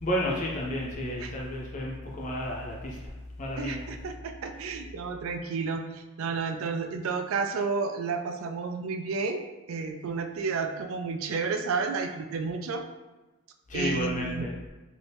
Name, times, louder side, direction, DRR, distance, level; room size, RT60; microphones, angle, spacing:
voice 1, 0.0-3.0 3.4-3.8 13.7-14.5, left 1 dB, 35° left, -3 dB, 0.5 m, -31 dB
voice 2, 3.6-9.4 9.7-12.8 13.7-14.5, right 4 dB, 75° right, 6 dB, 0.3 m, -31 dB
2.8 x 2.5 x 3.4 m, 1.1 s
head